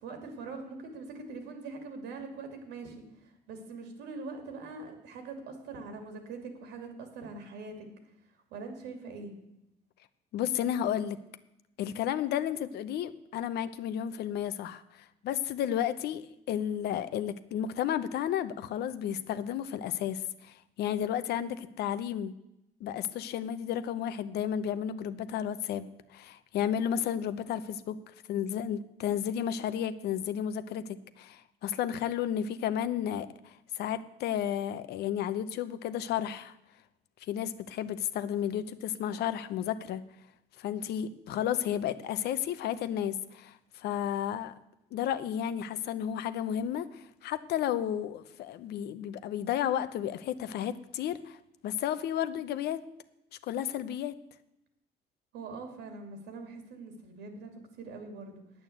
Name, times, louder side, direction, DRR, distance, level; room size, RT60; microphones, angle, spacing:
voice 1, 0.0-3.0 3.2-7.9 8.5-9.3 55.3-58.4, right 3 dB, 90° right, 5 dB, 2.6 m, -43 dB
voice 2, 10.3-11.2 11.8-22.3 22.8-28.0 28.3-36.5 37.3-40.0 40.6-44.5 44.9-51.4 51.6-52.8 53.4-54.1, left 10 dB, 75° left, 13 dB, 0.8 m, -32 dB
9.4 x 8.8 x 7.9 m, 0.85 s
cardioid pair, 110°, 17 cm